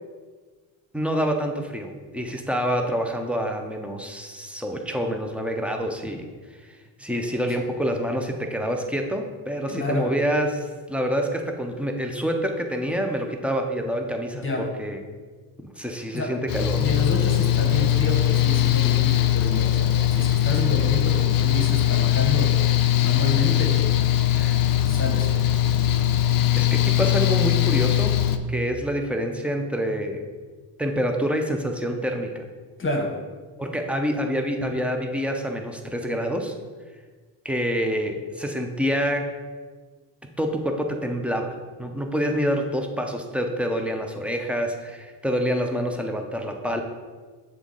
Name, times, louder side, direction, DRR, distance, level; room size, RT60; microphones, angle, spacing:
voice 1, 0.9-6.3 6.6-15.0 15.6-16.8 24.3-24.6 26.5-28.2 28.5-30.3 30.8-32.5 33.6-36.5 37.4-39.3 40.4-46.8, equal, 5° right, 3 dB, 0.6 m, -27 dB
voice 2, 9.7-10.2 14.3-14.7 16.1-16.4 16.8-22.6 23.0-23.8 24.8-25.3 32.8-33.2 34.6-34.8, left 2 dB, 25° left, 2 dB, 1.1 m, -29 dB
Mechanical fan, 16.5-28.4, left 11 dB, 50° left, 0.5 m, -21 dB
6.9 x 3.7 x 3.9 m, 1.4 s
cardioid pair, 90°, 46 cm